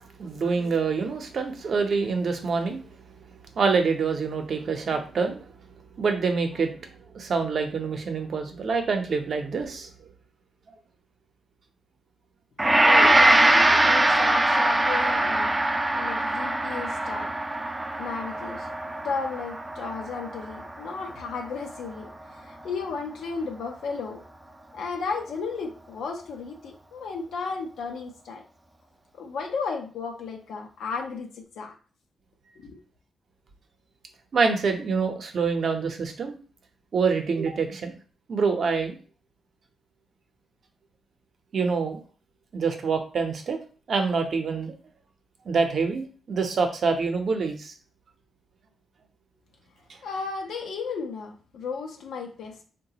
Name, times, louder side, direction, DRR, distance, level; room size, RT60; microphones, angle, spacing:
voice 1, 0.0-2.9 3.5-5.5 6.0-9.9 34.3-36.4 36.9-38.0 38.3-39.0 41.5-42.0 42.5-43.6 43.9-44.7 45.4-47.7, right 5 dB, 55° right, 5 dB, 0.6 m, -26 dB
Gong, 12.6-21.8, right 1 dB, 15° right, 0.3 m, -22 dB
voice 2, 12.8-15.5 15.9-17.3 17.8-18.7 19.0-24.2 24.7-28.4 29.1-31.7 32.6-32.8 50.0-52.6, left 4 dB, 85° left, 2 dB, 0.6 m, -34 dB
3.8 x 2.2 x 2.8 m, 0.38 s
cardioid pair, 105°, 0 cm